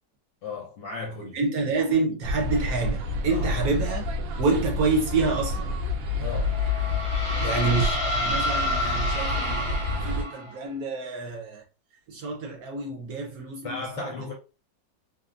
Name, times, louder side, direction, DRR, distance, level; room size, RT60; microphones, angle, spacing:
voice 1, 0.4-1.4 3.3-3.6 6.2-6.6 13.6-14.3, left 4 dB, 70° left, 1.2 m, -35 dB
voice 2, 1.3-4.0 4.4-5.7 7.4-9.8 10.0-11.6 12.1-14.3, right 3 dB, 65° right, 1.0 m, -28 dB
sound 1, 2.2-10.2, left 3 dB, 80° right, 1.3 m, -29 dB
sound 2, 6.3-10.6, equal, 5° left, 0.8 m, -29 dB
3.5 x 2.0 x 2.4 m
omnidirectional pair, 2.0 m